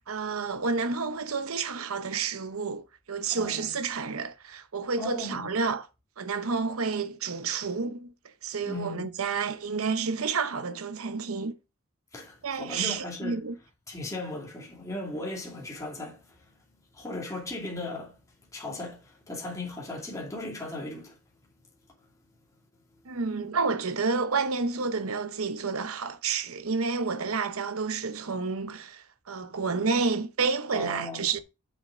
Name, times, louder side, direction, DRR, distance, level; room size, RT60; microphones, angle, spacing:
voice 1, 0.1-5.9 6.2-8.1 8.4-11.5 12.4-13.5 23.1-31.4, right 4 dB, 75° right, 0.8 m, -30 dB
voice 2, 3.3-3.8 5.0-5.5 8.6-9.1 12.1-13.4 13.9-16.4 16.9-18.2 18.5-21.2 30.7-31.3, left 2 dB, 15° left, 2.5 m, -37 dB
7.6 x 6.5 x 3.7 m
head